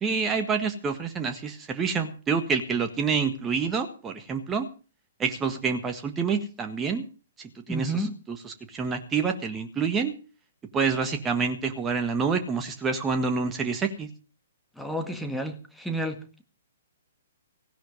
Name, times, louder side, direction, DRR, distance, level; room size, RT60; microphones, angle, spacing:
voice 1, 0.0-4.7 5.2-7.1 7.4-10.1 10.7-14.1, right 5 dB, 15° right, 1.6 m, -27 dB
voice 2, 7.7-8.2 14.8-16.4, right 1 dB, ahead, 1.9 m, -31 dB
16.5 x 11.5 x 5.3 m
figure-of-eight pair, 120°, 0 cm